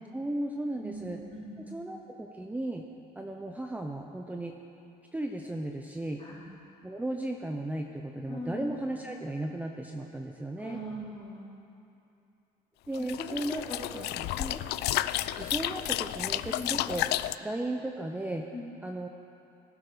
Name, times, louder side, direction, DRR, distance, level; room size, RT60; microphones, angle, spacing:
voice 1, 0.1-1.2 1.7-2.8 3.2-4.5 5.1-6.2 6.8-10.8 12.9-13.6 13.9-14.1 14.4-14.6 15.2-17.1 17.4-18.5 18.8-19.1, right 1 dB, 10° right, 2 dB, 0.8 m, -35 dB
voice 2, 0.7-1.8 6.2-6.4 8.3-8.8 10.6-11.5 13.0-13.8 14.1-14.6 16.5-16.7 18.5-18.7, left 1 dB, 35° left, -5 dB, 4.0 m, -41 dB
sound 1, 12.9-17.4, left 15 dB, 80° left, 0.4 m, -31 dB
19.0 x 12.0 x 5.1 m, 2.7 s
cardioid pair, 110°, 17 cm